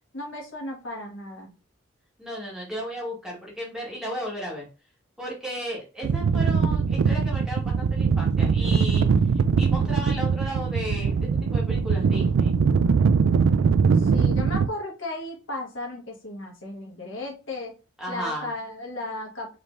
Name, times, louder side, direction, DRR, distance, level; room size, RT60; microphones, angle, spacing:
voice 1, 0.1-1.5 13.9-17.7 18.1-19.6, left 2 dB, 70° left, -1 dB, 1.5 m, -35 dB
voice 2, 2.2-4.7 5.2-9.1 9.6-12.5 18.0-18.5, equal, 5° right, -4 dB, 1.5 m, -34 dB
sound 1, 6.0-14.7, right 5 dB, 70° right, 0.3 m, -21 dB
5.0 x 3.1 x 2.5 m, 0.31 s
head